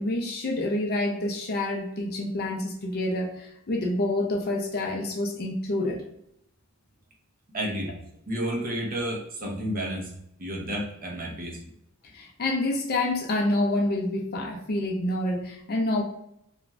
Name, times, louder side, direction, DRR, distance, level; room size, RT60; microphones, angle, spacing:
voice 1, 0.0-6.0 12.1-16.0, left 1 dB, 45° left, 1 dB, 0.5 m, -27 dB
voice 2, 7.5-7.9 8.3-10.1 10.4-11.6, right 1 dB, 40° right, -2 dB, 0.7 m, -31 dB
2.5 x 2.3 x 3.0 m, 0.75 s
head